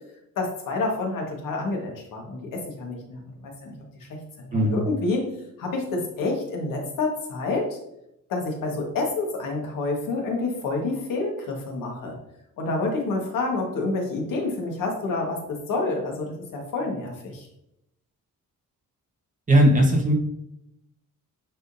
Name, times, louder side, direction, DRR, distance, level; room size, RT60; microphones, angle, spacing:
voice 1, 0.4-3.7 4.0-5.3 5.6-7.8 8.3-12.2 12.6-17.5, left 3 dB, 85° left, 0 dB, 1.7 m, -28 dB
voice 2, 4.5-4.8 19.5-20.1, equal, 25° right, 0 dB, 1.2 m, -18 dB
9.2 x 3.8 x 2.7 m, 0.81 s
cardioid pair, 160°, 32 cm